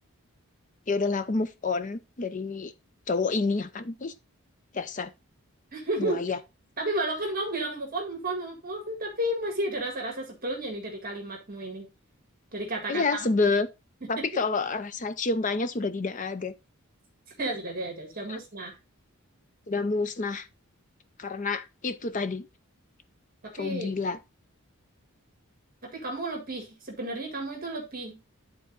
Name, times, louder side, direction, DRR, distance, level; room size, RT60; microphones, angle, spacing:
voice 1, 0.9-2.7 3.1-4.1 4.7-5.1 6.0-6.4 12.9-13.7 14.1-16.5 18.3-18.4 19.7-20.5 21.2-22.5 23.5-24.2, left 3 dB, 35° left, 0.5 m, -28 dB
voice 2, 5.7-6.2 6.8-11.9 12.5-13.3 14.2-14.3 17.4-18.8 23.4-23.9 25.8-28.2, right 1 dB, 40° right, 1.7 m, -32 dB
10.0 x 3.9 x 3.9 m
head